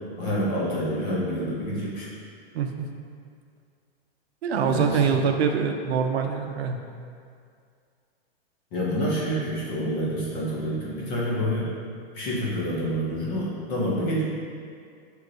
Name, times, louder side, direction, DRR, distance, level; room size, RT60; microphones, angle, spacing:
voice 1, 0.2-2.1 4.6-5.2 8.7-11.7 12.1-14.2, equal, 15° left, -6 dB, 0.4 m, -27 dB
voice 2, 2.5-2.9 4.4-6.8, right 6 dB, 90° right, 4 dB, 0.5 m, -24 dB
6.1 x 2.9 x 2.5 m, 2.2 s
supercardioid pair, 160°, 31 cm